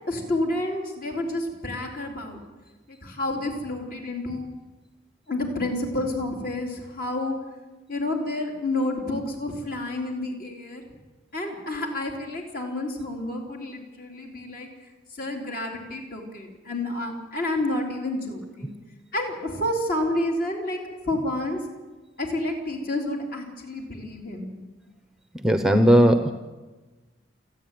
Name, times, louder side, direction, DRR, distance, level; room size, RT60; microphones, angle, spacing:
voice 1, 0.1-2.4 2.9-4.5 5.3-7.4 7.9-10.9 11.3-14.7 15.1-18.7 19.1-21.6 22.2-24.5, left 1 dB, 50° left, 1 dB, 3.9 m, -29 dB
voice 2, 25.4-26.3, equal, 5° right, 8 dB, 0.8 m, -17 dB
28.5 x 9.8 x 9.4 m, 1.2 s
head